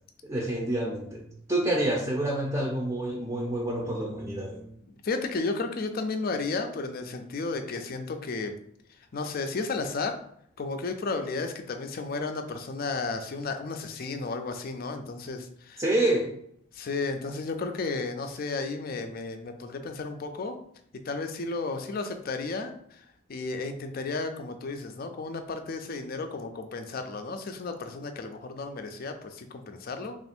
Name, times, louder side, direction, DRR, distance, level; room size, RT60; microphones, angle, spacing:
voice 1, 0.2-4.7 15.8-16.3, right 1 dB, 15° right, -2 dB, 0.6 m, -28 dB
voice 2, 5.0-8.5 9.1-10.2 10.6-15.8 16.7-20.6 21.1-23.0 23.3-30.2, left 3 dB, 45° left, 6 dB, 0.4 m, -33 dB
3.3 x 2.5 x 4.3 m, 0.67 s
head